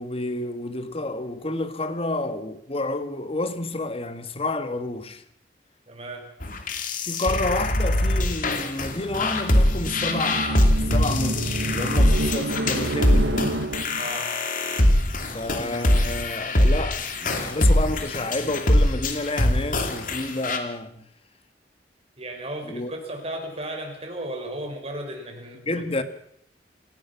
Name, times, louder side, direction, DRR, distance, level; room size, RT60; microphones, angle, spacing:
voice 1, 0.0-5.2 7.0-13.7 15.3-21.1 22.7-22.9 25.7-26.0, left 2 dB, 30° left, 1.6 m, -30 dB
voice 2, 5.9-6.3 14.0-14.3 22.2-26.0, right 1 dB, 35° right, 5.3 m, -35 dB
sound 1, 6.4-20.6, left 1 dB, 50° left, 2.8 m, -23 dB
sound 2, 8.7-14.2, right 2 dB, 90° right, 1.5 m, -29 dB
28.5 x 18.0 x 5.9 m
head